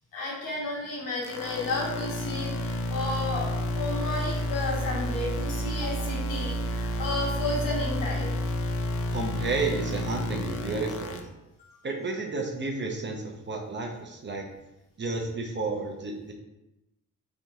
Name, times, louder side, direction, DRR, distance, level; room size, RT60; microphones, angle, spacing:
voice 1, 0.1-8.3 11.6-11.7, left 2 dB, 75° left, -3 dB, 1.3 m, -32 dB
sound 1, 1.2-11.2, equal, 40° left, 0.5 m, -30 dB
voice 2, 9.1-11.3 11.8-14.5 15.0-16.3, right 3 dB, 35° right, 1 dB, 0.6 m, -31 dB
3.5 x 3.3 x 2.8 m, 0.93 s
cardioid pair, 95°, 34 cm